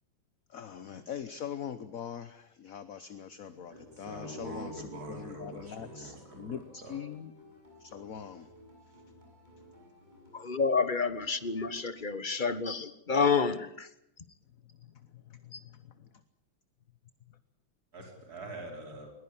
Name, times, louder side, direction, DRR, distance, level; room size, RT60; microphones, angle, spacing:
voice 1, 0.5-7.3 7.8-8.5 14.6-16.1, left 8 dB, 50° left, 12 dB, 1.3 m, -43 dB
sound 1, 3.5-12.4, left 1 dB, 20° right, 7.8 m, -57 dB
voice 2, 3.7-7.0 17.9-19.1, right 2 dB, 50° right, 2 dB, 5.8 m, -44 dB
voice 3, 10.3-13.9 15.5-15.6, left 5 dB, 30° left, 13 dB, 1.3 m, -29 dB
21.0 x 21.0 x 8.8 m, 0.74 s
omnidirectional pair, 2.1 m